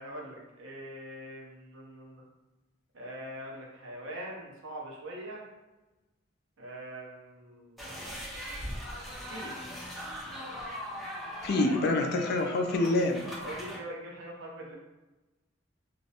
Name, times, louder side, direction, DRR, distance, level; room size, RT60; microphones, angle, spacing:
voice 1, 0.0-2.2 2.9-5.5 6.6-8.3 9.3-9.6 13.4-14.8, right 1 dB, 75° right, -3 dB, 0.7 m, -43 dB
sound 1, 7.8-13.8, equal, ahead, 0.6 m, -40 dB
voice 2, 11.4-13.4, left 2 dB, 50° left, 3 dB, 0.3 m, -27 dB
2.4 x 2.0 x 2.8 m, 1.1 s
head